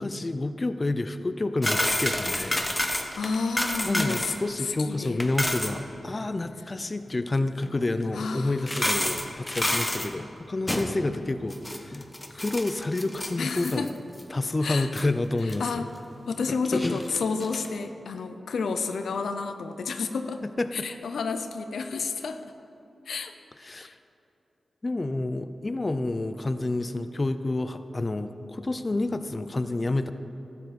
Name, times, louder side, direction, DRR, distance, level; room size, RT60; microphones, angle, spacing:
voice 1, 0.0-3.2 3.8-13.9 14.3-15.8 16.7-17.0 20.4-20.9 23.6-24.0 24.8-30.1, left 2 dB, 35° left, 10 dB, 0.6 m, -29 dB
sound 1, 1.6-4.4 4.7-4.8 5.1-5.7 7.6-7.7 8.6-10.1 10.7-11.0 11.5-13.9 14.2-14.3 14.8-15.0 15.5-15.6 16.6-17.7, left 1 dB, 20° left, 1.4 m, -29 dB
voice 2, 3.2-4.3 4.6-5.2 8.1-8.6 13.4-13.9 14.6-14.9 15.4-15.9 16.3-20.4 20.7-22.4 23.1-23.3 23.8-23.9, left 4 dB, 85° left, 8 dB, 0.7 m, -30 dB
16.0 x 13.0 x 4.3 m, 2.8 s
cardioid pair, 55°, 0 cm